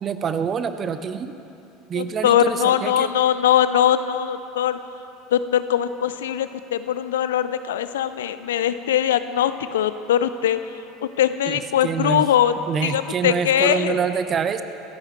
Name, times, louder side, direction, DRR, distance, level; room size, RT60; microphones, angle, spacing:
voice 1, 0.0-1.3 1.9-3.1 11.5-12.3 12.7-14.6, right 6 dB, 35° right, 10 dB, 0.9 m, -26 dB
voice 2, 1.9-4.8 5.3-10.6 11.0-12.5 12.8-14.0, left 10 dB, 70° left, 12 dB, 0.6 m, -21 dB
26.5 x 14.0 x 3.3 m, 2.8 s
figure-of-eight pair, 70°, 0 cm